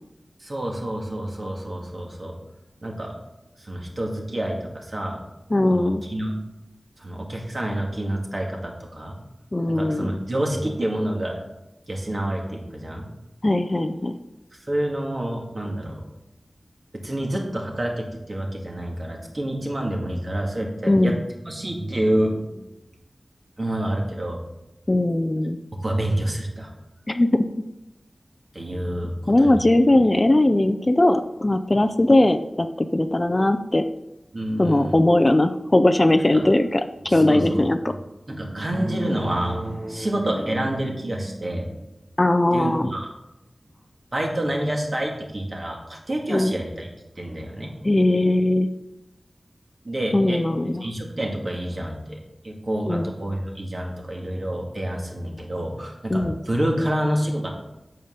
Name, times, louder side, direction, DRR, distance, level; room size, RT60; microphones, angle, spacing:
voice 1, 0.4-2.4 2.8-3.2 3.6-5.2 5.7-6.3 7.0-9.2 9.7-11.4 11.9-13.1 14.7-16.0 16.9-21.2 21.5-22.6 23.6-24.4 25.8-26.7 28.5-29.6 34.3-34.9 36.2-36.5 37.1-37.6 38.3-41.9 42.5-43.1 44.1-46.9 47.2-47.7 49.8-50.4 50.8-52.2 52.4-57.5, right 1 dB, 45° right, 0 dB, 2.1 m, -28 dB
voice 2, 5.5-6.0 9.5-10.2 13.4-14.2 20.9-21.2 24.9-25.6 27.1-27.3 29.3-33.8 34.6-37.9 42.2-42.9 46.3-46.6 47.8-48.7 50.1-50.8 52.9-53.1 56.1-56.4, left 1 dB, 30° left, 9 dB, 0.5 m, -19 dB
8.8 x 5.7 x 6.6 m, 0.96 s
wide cardioid pair, 80°, 0 cm